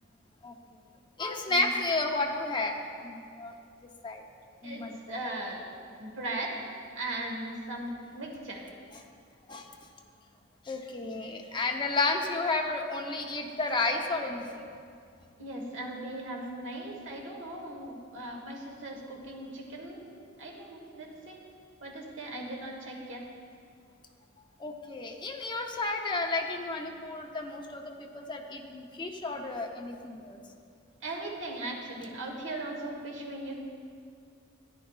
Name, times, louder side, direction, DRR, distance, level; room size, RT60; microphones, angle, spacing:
voice 1, 1.2-2.7 3.0-3.5 4.0-4.2 4.6-5.2 8.9-9.0 9.5-9.7 10.7-14.6 24.6-30.4, left 2 dB, 25° left, 2 dB, 0.7 m, -32 dB
voice 2, 4.6-5.6 6.0-6.6 6.9-8.6 15.4-20.0 20.4-21.4 21.8-23.2 31.0-33.5, right 1 dB, 70° right, -1 dB, 1.4 m, -38 dB
12.5 x 9.6 x 2.4 m, 2.3 s
head